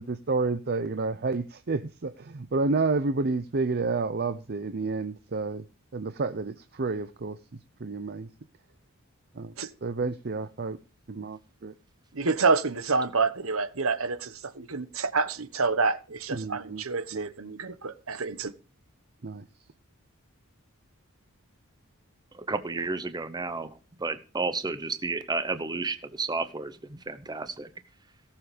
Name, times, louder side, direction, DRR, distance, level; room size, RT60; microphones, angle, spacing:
voice 1, 0.0-5.6 5.9-7.4 7.8-8.3 9.4-9.5 9.8-10.8 11.1-11.7 16.3-16.8 17.1-17.3 19.2-19.5, right 3 dB, 50° right, 0.7 m, -30 dB
voice 2, 12.1-18.5, right 4 dB, 70° right, 1.2 m, -28 dB
voice 3, 22.3-23.7 24.0-27.7, right 3 dB, 20° right, 0.9 m, -32 dB
17.0 x 7.2 x 5.2 m
head